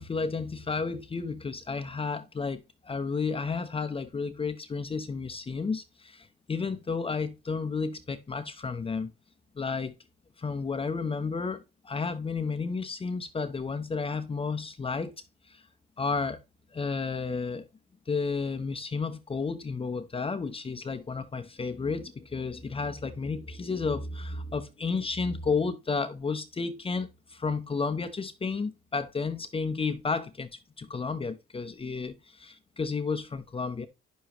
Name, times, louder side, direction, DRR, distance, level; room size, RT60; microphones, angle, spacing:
voice 1, 0.0-9.1 9.6-9.9 10.4-15.1 15.5-15.6 16.0-16.4 16.7-17.6 18.1-33.9, left 4 dB, 30° left, 0.8 m, -32 dB
10.0 x 6.8 x 3.0 m
cardioid pair, 90°, 20 cm